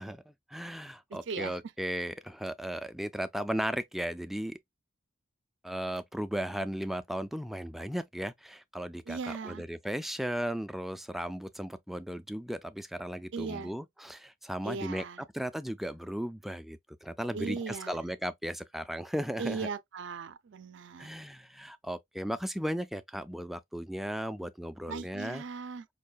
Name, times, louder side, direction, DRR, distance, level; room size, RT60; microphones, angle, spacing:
voice 1, 0.0-4.6 5.6-19.7 21.0-25.4, equal, ahead, 0.3 m, -36 dB
voice 2, 9.1-9.6 13.3-13.7 14.6-15.2 17.3-18.1 19.4-21.1 24.9-25.9, right 5 dB, 65° right, 0.5 m, -38 dB
5.3 x 2.3 x 2.3 m
head